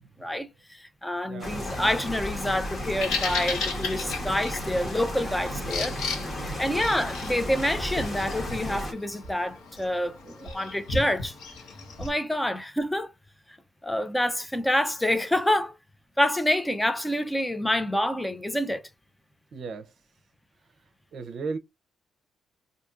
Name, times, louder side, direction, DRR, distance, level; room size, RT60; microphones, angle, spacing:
voice 1, 0.2-6.0 6.4-11.3 12.0-13.1 13.8-15.8 16.2-18.8, left 1 dB, 10° left, 0.6 m, -27 dB
voice 2, 1.3-1.7 4.0-6.9 10.2-10.7 19.5-19.9 21.1-21.6, right 4 dB, 60° right, 0.6 m, -40 dB
sound 1, 1.4-8.9, left 1 dB, 30° left, 1.4 m, -34 dB
Bird vocalization bird call bird song, 2.7-12.1, left 4 dB, 85° left, 1.2 m, -35 dB
4.2 x 2.7 x 2.4 m
cardioid pair, 90°, 0 cm